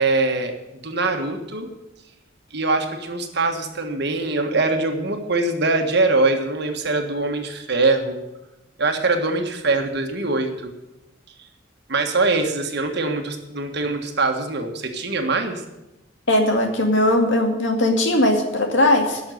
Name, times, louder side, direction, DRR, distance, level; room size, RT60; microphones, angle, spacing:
voice 1, 0.0-1.7 2.5-8.2 8.8-10.7 11.9-15.6, right 3 dB, 60° right, 4 dB, 1.5 m, -23 dB
voice 2, 16.3-19.2, left 1 dB, 70° left, 3 dB, 2.1 m, -19 dB
11.5 x 6.5 x 9.2 m, 0.96 s
head